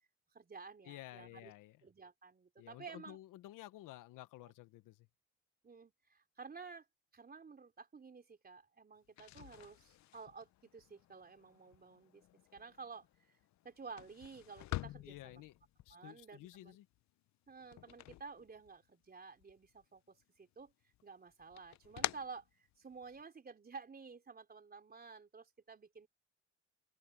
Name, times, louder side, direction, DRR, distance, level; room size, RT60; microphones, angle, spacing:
voice 1, 0.3-1.5 1.8-3.2 5.6-6.9 7.1-12.2 12.5-13.1 13.6-15.4 15.9-16.8 17.5-20.7 21.0-26.1, right 5 dB, 30° right, 3.7 m, -52 dB
voice 2, 0.8-1.8 2.6-5.1 15.0-15.5 15.9-16.8, left 16 dB, 80° left, 1.1 m, -53 dB
sound 1, 9.0-19.1 19.4-20.2 20.6-23.2, left 15 dB, 60° left, 0.6 m, -48 dB
open air
cardioid pair, 100°, 31 cm